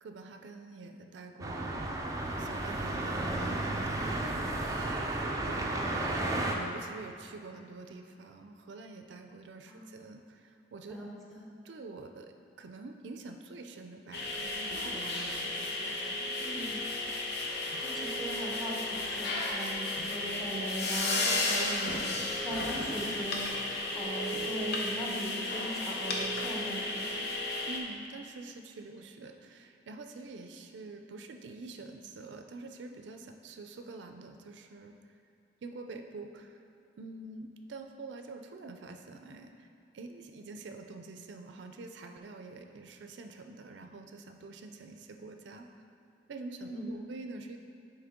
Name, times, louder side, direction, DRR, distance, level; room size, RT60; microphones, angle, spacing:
voice 1, 0.0-1.9 2.4-5.0 5.4-11.0 11.6-16.4 27.6-35.0 35.6-36.6 37.0-39.7 39.9-45.7 46.3-47.6, right 3 dB, 85° right, 5 dB, 0.4 m, -46 dB
sound 1, 1.4-6.5, right 2 dB, 20° right, 0.4 m, -33 dB
voice 2, 10.9-11.4 16.4-16.9 17.8-23.6 23.9-27.3 46.6-47.0, equal, ahead, -4 dB, 0.8 m, -39 dB
sound 2, 14.1-27.8, left 2 dB, 65° left, 0.7 m, -33 dB
9.4 x 3.2 x 3.6 m, 2.6 s
head